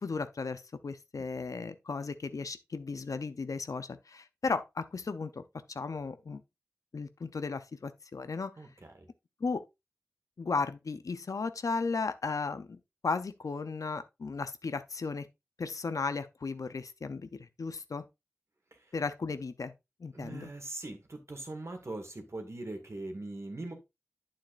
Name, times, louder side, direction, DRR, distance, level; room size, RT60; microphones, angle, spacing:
voice 1, 0.0-5.4 5.7-6.4 6.9-8.5 9.4-9.6 10.4-15.3 15.6-18.0 18.9-19.7 20.0-20.5, left 4 dB, 85° left, 0.6 m, -35 dB
voice 2, 8.6-9.1 18.7-18.9 20.1-23.7, right 2 dB, 55° right, 1.9 m, -41 dB
9.0 x 7.4 x 2.5 m
wide cardioid pair, 45°, 6 cm